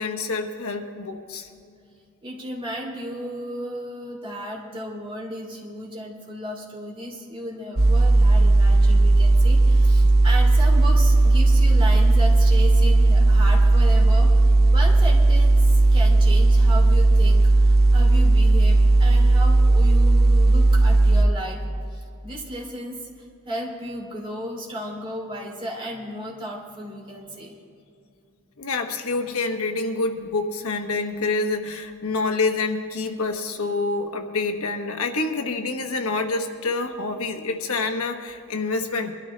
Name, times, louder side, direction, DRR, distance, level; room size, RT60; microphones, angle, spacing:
voice 1, 0.0-1.5 28.6-39.1, left 3 dB, 75° left, 5 dB, 1.1 m, -27 dB
voice 2, 2.2-21.6 21.9-23.0 23.5-27.6, equal, 25° right, -2 dB, 2.8 m, -34 dB
sound 1, 7.8-21.2, right 2 dB, 45° right, 0.9 m, -16 dB
22.5 x 13.0 x 3.3 m, 2.5 s
head